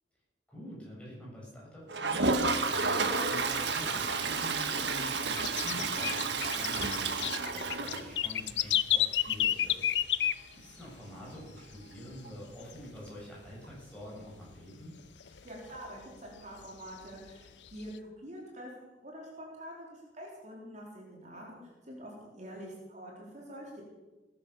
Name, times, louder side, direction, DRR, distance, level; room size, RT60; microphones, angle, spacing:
voice 1, 0.5-14.9, equal, 5° left, -6 dB, 7.8 m, -47 dB
Toilet flush, 1.9-8.6 8.9-9.0 9.2-9.3 9.6-9.7 12.2-12.3 13.6-13.7, right 4 dB, 80° right, 1.5 m, -31 dB
sound 1, 3.3-4.6 4.9-11.0 11.3-11.4 11.7-12.2 12.5-13.7 14.0-14.1 14.5-14.6 15.0-16.2 16.7-18.0, left 12 dB, 90° left, 0.6 m, -31 dB
voice 2, 15.3-23.9, equal, 45° right, -3 dB, 4.1 m, -46 dB
18.0 x 11.0 x 7.1 m, 1.1 s
head